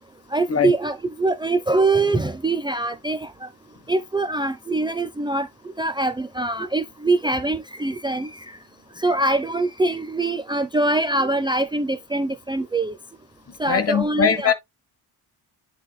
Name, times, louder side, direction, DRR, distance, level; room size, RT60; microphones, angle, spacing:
voice 1, 0.3-3.5 3.9-5.5 5.8-8.6 9.0-12.9 13.6-14.5, right 2 dB, 10° right, 0.6 m, -23 dB
voice 2, 13.7-14.5, left 7 dB, 35° left, 1.2 m, -20 dB
10.0 x 4.2 x 2.2 m
cardioid pair, 115°, 40 cm